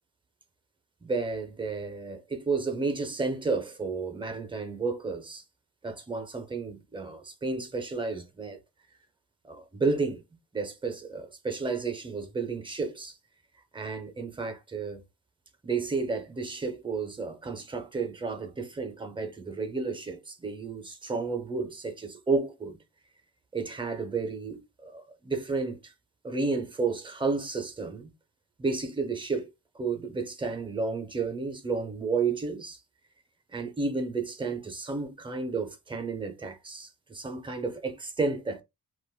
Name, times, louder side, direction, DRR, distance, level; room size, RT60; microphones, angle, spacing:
voice 1, 1.0-5.4 5.8-8.6 9.4-10.2 10.5-13.1 13.7-15.0 15.6-22.8 23.5-25.9 26.2-28.1 28.6-32.8 33.5-38.6, right 4 dB, 15° right, 0.4 m, -32 dB
3.3 x 2.2 x 2.2 m
wide cardioid pair, 175°, 37 cm